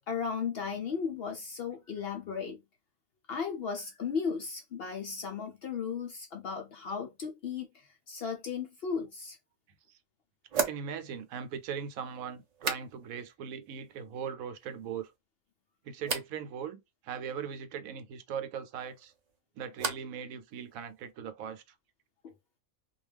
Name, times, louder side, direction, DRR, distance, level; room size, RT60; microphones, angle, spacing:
voice 1, 0.1-2.6 3.3-9.4 22.2-22.3, left 6 dB, 65° left, 0.6 m, -35 dB
sound 1, 9.2-9.3 10.5-13.3 13.6-14.2 14.6-15.2 16.0-16.4 18.8-20.2 20.5-21.1, right 5 dB, 55° right, 0.4 m, -38 dB
voice 2, 10.5-15.1 15.8-19.1 19.6-21.6, right 7 dB, 85° right, 1.0 m, -39 dB
2.4 x 2.3 x 3.3 m
omnidirectional pair, 1.4 m